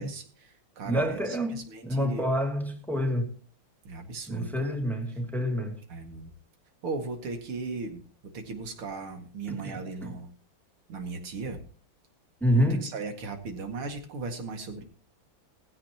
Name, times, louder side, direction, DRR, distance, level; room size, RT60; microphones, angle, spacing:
voice 1, 0.0-2.2 3.8-4.8 5.9-6.3 6.8-8.0 8.3-10.3 10.9-11.6 12.5-14.8, right 4 dB, 90° right, 2.9 m, -37 dB
voice 2, 0.8-3.3 4.3-5.8 9.5-10.1 12.4-12.9, equal, ahead, 2.3 m, -28 dB
17.0 x 15.5 x 2.9 m
omnidirectional pair, 2.3 m